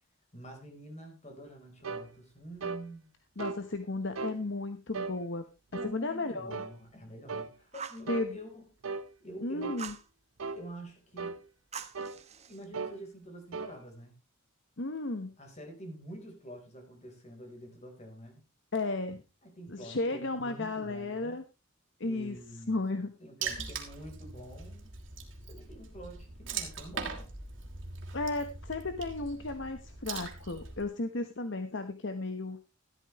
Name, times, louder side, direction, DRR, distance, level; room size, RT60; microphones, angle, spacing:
voice 1, 0.3-3.1 5.7-8.7 9.2-9.8 10.6-11.4 12.5-14.1 15.4-18.4 19.4-21.4 22.0-22.8 23.2-24.9 25.5-27.3, right 1 dB, 30° left, 4 dB, 4.0 m, -47 dB
sound 1, 1.8-2.1 2.6-2.8 3.4-3.6 4.1-4.4 4.9-5.2 5.7-6.0 6.5-6.7 7.3-7.5 8.1-8.3 8.8-9.1 9.6-9.8 10.4-10.6 11.2-11.4 11.9-12.2 12.7-13.0 13.5-13.7, right 4 dB, 75° right, 0.8 m, -37 dB
voice 2, 3.4-5.4 5.8-6.6 8.1-8.4 9.4-9.9 14.8-15.4 18.7-19.2 19.7-21.4 22.0-22.4 22.7-23.2 23.5-23.6 28.1-32.6, left 2 dB, 60° left, 8 dB, 1.1 m, -34 dB
Fire, 7.7-8.1 9.8-10.1 11.7-12.6, right 7 dB, 30° right, 0.9 m, -43 dB
Water / Splash splatter, 23.4-30.8, right 5 dB, 60° right, 2.8 m, -41 dB
13.5 x 12.5 x 3.1 m, 0.28 s
head